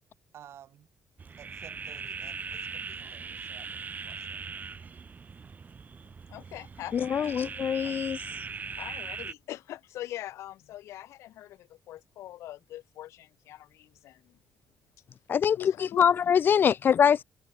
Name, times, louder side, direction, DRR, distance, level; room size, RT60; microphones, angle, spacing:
voice 1, 0.3-0.9 1.4-4.4 7.8-8.7, right 10 dB, 65° right, 5.7 m, -54 dB
sound 1, 1.2-9.3, right 5 dB, 35° right, 4.5 m, -40 dB
voice 2, 6.3-7.4 8.8-14.4 15.6-16.1, left 14 dB, 85° left, 3.3 m, -42 dB
voice 3, 6.9-8.2 15.3-17.2, left 8 dB, 45° left, 0.3 m, -23 dB
cardioid pair, 100°, 5 cm